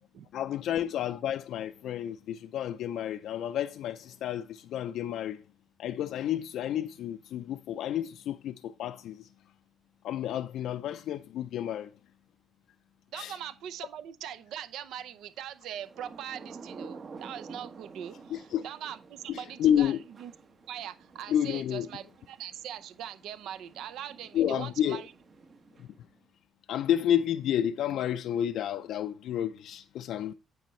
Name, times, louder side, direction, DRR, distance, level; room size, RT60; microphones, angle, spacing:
voice 1, 0.3-5.4 5.8-9.3 10.0-11.9 13.1-13.4 18.3-18.6 19.3-20.0 21.3-21.9 24.3-25.0 25.8-25.9 26.7-30.3, left 10 dB, 80° left, 0.4 m, -30 dB
voice 2, 13.1-19.9 20.2-20.3 20.7-25.1, right 10 dB, 85° right, 0.6 m, -41 dB
Thunder / Rain, 15.6-26.2, right 4 dB, 50° right, 1.1 m, -50 dB
9.2 x 7.2 x 3.1 m
cardioid pair, 90°, 0 cm